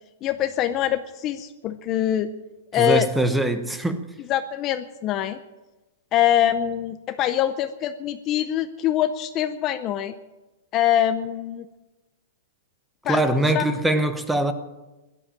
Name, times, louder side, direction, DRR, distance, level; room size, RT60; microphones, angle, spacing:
voice 1, 0.2-2.3 2.7-3.1 4.3-5.4 6.1-10.1 10.7-11.7 13.0-13.2 13.5-13.6, left 11 dB, 25° left, 0.6 m, -23 dB
voice 2, 2.7-4.1 13.1-14.5, right 1 dB, 5° right, 0.9 m, -22 dB
17.0 x 11.5 x 7.4 m
supercardioid pair, 170°, 0 cm